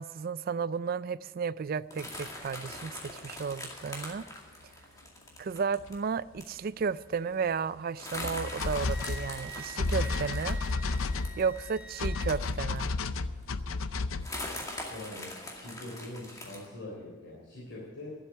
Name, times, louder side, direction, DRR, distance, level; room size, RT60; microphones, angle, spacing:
voice 1, 0.0-4.3 5.4-10.6 11.4-12.9, right 5 dB, 45° right, 0.3 m, -33 dB
sound 1, 1.9-5.9 6.4-6.6 6.8-6.9 7.2-7.4 8.0-13.0 13.4-13.5 14.2-16.7, left 2 dB, 15° left, 2.2 m, -42 dB
sound 2, 4.1-4.2 5.8-5.9 6.4-6.5 8.1-14.3, left 3 dB, 80° left, 0.6 m, -32 dB
Wind instrument woodwind instrument, 8.4-12.3, right 1 dB, 10° right, 3.1 m, -46 dB
voice 2, 14.9-18.1, left 1 dB, 60° left, 3.3 m, -43 dB
12.0 x 7.9 x 9.7 m
head